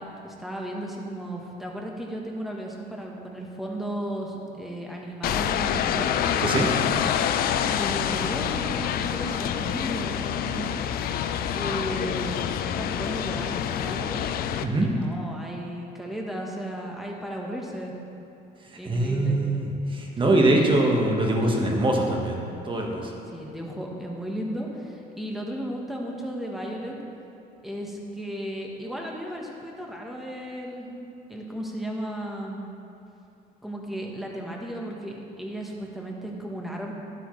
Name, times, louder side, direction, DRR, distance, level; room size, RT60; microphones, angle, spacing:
voice 1, 0.0-6.1 7.7-10.8 11.5-14.2 14.8-17.9 18.8-19.4 20.5-20.7 21.5-21.7 23.3-27.0 27.6-30.9 31.3-32.6 33.6-36.9, right 1 dB, ahead, -1 dB, 1.3 m, -35 dB
sound 1, 5.2-14.6, left 9 dB, 65° left, 0.4 m, -27 dB
voice 2, 18.8-23.0, right 2 dB, 30° right, 0 dB, 1.4 m, -23 dB
11.5 x 7.9 x 3.3 m, 2.7 s
cardioid pair, 110°, 17 cm